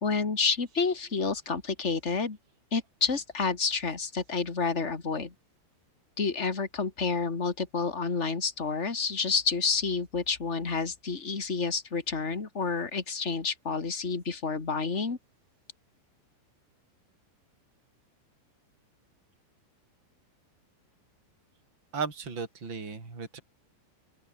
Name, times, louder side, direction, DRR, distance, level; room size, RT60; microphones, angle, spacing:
voice 1, 0.0-2.4 2.7-5.3 6.2-15.2, left 4 dB, 30° left, 1.3 m, -29 dB
voice 2, 21.9-23.4, right 5 dB, 25° right, 5.4 m, -35 dB
open air
omnidirectional pair, 5.3 m